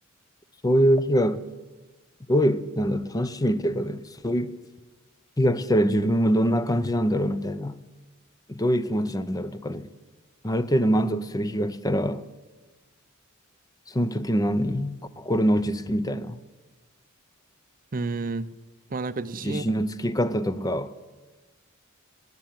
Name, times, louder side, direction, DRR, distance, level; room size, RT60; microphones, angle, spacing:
voice 1, 0.6-1.4 2.3-4.6 5.4-7.8 8.5-9.9 10.4-12.2 13.9-16.4 19.4-20.9, equal, 15° left, 0.6 m, -24 dB
voice 2, 17.9-18.5 18.9-19.6, right 3 dB, 40° right, 0.6 m, -30 dB
18.5 x 8.2 x 9.1 m
head